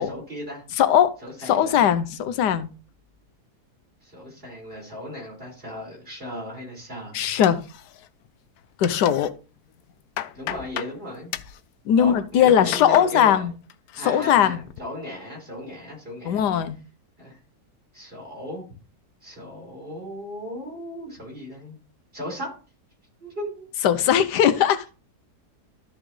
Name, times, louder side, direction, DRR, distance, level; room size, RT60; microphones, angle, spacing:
voice 1, 0.0-0.6 1.2-1.9 4.0-7.2 10.3-11.3 12.0-13.4 14.0-16.5 17.2-17.3 17.9-18.6 19.2-21.8 22.1-22.5 23.2-23.7, left 1 dB, 35° right, 4.7 m, -36 dB
voice 2, 0.8-1.1 1.4-2.7 7.1-7.6 8.8-9.3 11.9-13.5 14.0-14.6 16.2-16.8 23.8-24.8, left 9 dB, 90° left, 1.3 m, -19 dB
sound 1, 7.4-8.3 8.6-9.3 9.7-11.0 11.3-11.6 12.2-13.1 13.5-14.0 14.4-14.8, left 12 dB, 70° left, 1.0 m, -35 dB
13.5 x 5.0 x 3.2 m
omnidirectional pair, 1.8 m